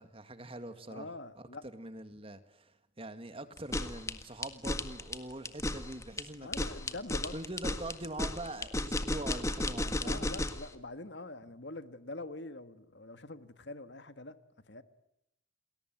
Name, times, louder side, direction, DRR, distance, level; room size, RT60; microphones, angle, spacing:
voice 1, 0.0-1.1 1.4-6.5 7.3-10.3, right 1 dB, 30° right, 1.9 m, -43 dB
voice 2, 0.9-1.6 6.4-7.4 10.0-14.4 14.7-14.8, left 2 dB, 65° left, 1.7 m, -44 dB
sound 1, 3.6-10.7, left 1 dB, 15° left, 1.7 m, -34 dB
29.0 x 21.0 x 9.1 m
head